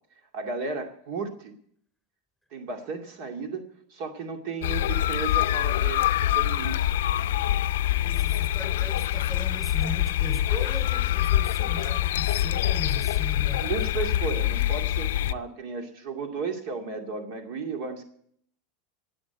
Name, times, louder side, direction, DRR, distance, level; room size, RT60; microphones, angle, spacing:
voice 1, 0.3-1.5 2.5-3.6 3.9-6.9 13.4-18.0, right 4 dB, 60° right, 4 dB, 2.3 m, -34 dB
sound 1, 4.6-15.3, left 13 dB, 85° left, 0.5 m, -25 dB
voice 2, 8.0-13.8, left 1 dB, 5° right, 5 dB, 3.6 m, -38 dB
19.5 x 7.9 x 8.1 m, 0.65 s
supercardioid pair, 135°, 0 cm